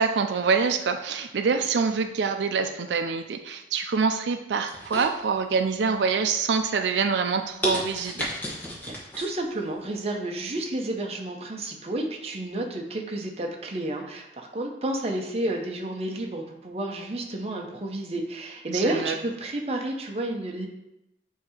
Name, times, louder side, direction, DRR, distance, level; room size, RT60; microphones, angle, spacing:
voice 1, 0.0-8.3 18.7-19.2, right 5 dB, 85° right, 7 dB, 0.4 m, -25 dB
sound 1, 4.7-5.7 6.1-6.5 7.0-7.1 7.6-9.3 9.7-9.8, equal, 10° left, 1.0 m, -32 dB
voice 2, 8.8-20.7, right 1 dB, 35° right, 1 dB, 0.7 m, -31 dB
7.2 x 2.8 x 4.9 m, 0.87 s
head